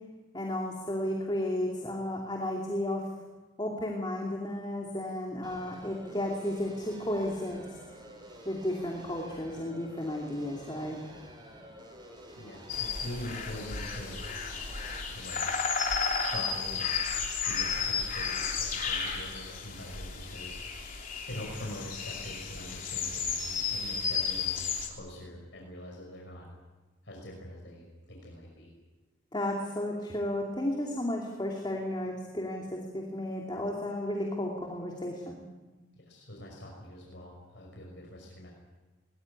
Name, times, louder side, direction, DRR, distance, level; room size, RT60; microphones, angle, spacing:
voice 1, 0.3-3.1 3.6-7.6 8.4-11.0 29.3-35.4, left 1 dB, 20° left, 0 dB, 2.7 m, -33 dB
sound 1, 5.4-15.0, equal, 20° right, 5.1 m, -50 dB
voice 2, 12.4-14.2 15.1-15.4 16.2-17.0 17.4-20.8 21.2-26.5 27.0-28.7 35.9-38.5, left 1 dB, 60° left, -1 dB, 5.6 m, -43 dB
sound 2, 12.7-24.9, left 5 dB, 40° left, 3.5 m, -33 dB
21.5 x 19.5 x 9.7 m, 1.2 s
head